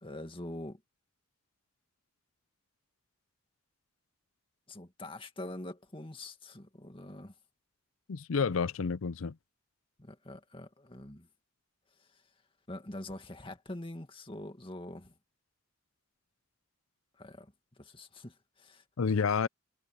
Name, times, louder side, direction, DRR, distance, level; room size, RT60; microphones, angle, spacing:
voice 1, 0.0-0.8 4.7-7.3 10.0-11.3 12.7-15.1 17.2-17.5 17.8-18.8, left 1 dB, 25° left, 2.1 m, -44 dB
voice 2, 8.1-9.3 19.0-19.5, left 5 dB, 90° left, 0.5 m, -29 dB
head